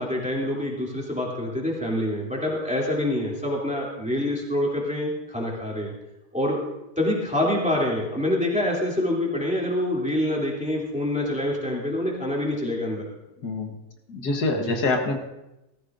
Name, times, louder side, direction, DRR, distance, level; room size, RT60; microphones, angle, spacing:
voice 1, 0.0-5.9 6.3-6.6 7.0-13.0 14.7-14.8, left 1 dB, 5° right, -3 dB, 2.9 m, -26 dB
voice 2, 13.4-13.8 14.1-15.2, left 3 dB, 80° left, 2 dB, 1.9 m, -25 dB
16.5 x 14.5 x 2.6 m, 0.94 s
omnidirectional pair, 1.7 m